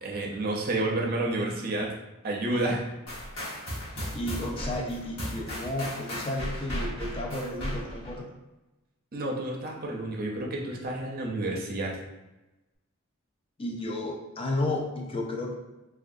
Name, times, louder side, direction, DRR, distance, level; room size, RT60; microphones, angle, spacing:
voice 1, 0.0-1.9 2.2-2.9 9.1-12.0, right 2 dB, 45° right, -1 dB, 0.6 m, -30 dB
sound 1, 3.1-8.2, equal, 65° left, 1.1 m, -35 dB
voice 2, 4.1-8.3 13.6-15.5, left 1 dB, 25° left, 0 dB, 0.4 m, -32 dB
3.4 x 2.3 x 2.5 m, 1.0 s
head